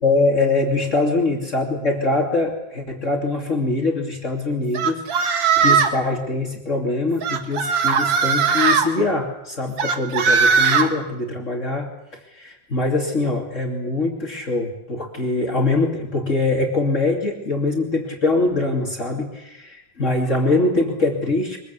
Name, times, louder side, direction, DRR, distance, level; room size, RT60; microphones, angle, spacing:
voice 1, 0.0-11.9 12.3-21.6, left 2 dB, 35° left, 1 dB, 3.2 m, -23 dB
sound 1, 4.7-6.0 7.2-8.9 9.8-10.9, right 6 dB, 75° right, 2.5 m, -18 dB
24.5 x 22.0 x 8.4 m, 0.89 s
omnidirectional pair, 2.1 m